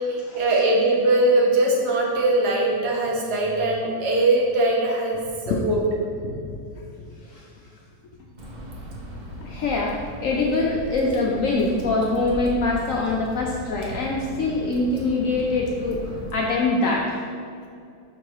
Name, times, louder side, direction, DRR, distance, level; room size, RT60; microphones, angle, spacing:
voice 1, 0.0-5.2 5.5-5.8, right 2 dB, 70° right, -2 dB, 1.5 m, -21 dB
voice 2, 6.2-7.5 9.4-17.2, left 3 dB, 70° left, -2 dB, 0.8 m, -24 dB
Water / Drip, 8.4-16.3, equal, 40° right, 0.6 m, -37 dB
5.3 x 3.9 x 4.6 m, 2.4 s
omnidirectional pair, 1.9 m